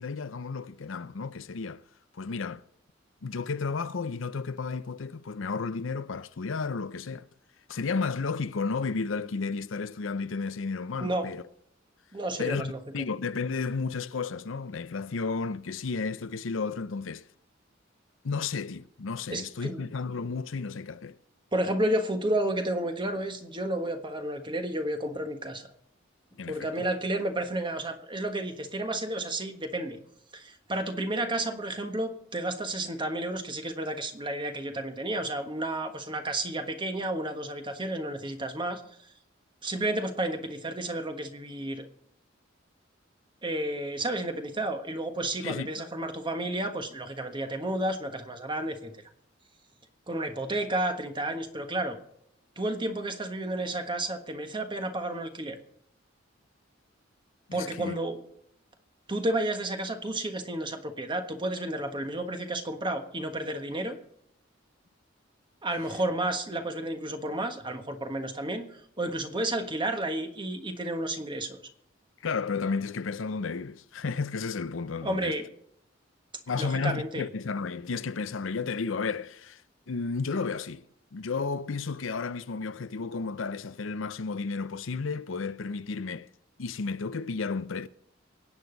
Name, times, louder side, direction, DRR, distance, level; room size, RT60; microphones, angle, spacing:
voice 1, 0.0-1.8 2.1-2.6 3.2-7.3 7.7-11.4 12.4-17.3 18.2-21.2 26.4-26.9 45.4-45.9 57.5-58.0 72.2-75.4 76.5-79.6 79.9-80.8 81.1-86.3 86.6-87.9, left 4 dB, 85° left, 0.6 m, -32 dB
voice 2, 11.0-11.3 12.1-13.1 19.3-19.9 21.5-25.7 26.5-30.0 30.3-38.8 39.6-41.9 43.4-48.9 50.1-52.0 52.6-55.6 57.5-58.2 59.1-64.0 65.6-71.6 75.0-75.4 76.6-77.3, right 1 dB, 25° right, 1.4 m, -31 dB
24.0 x 9.0 x 4.0 m
head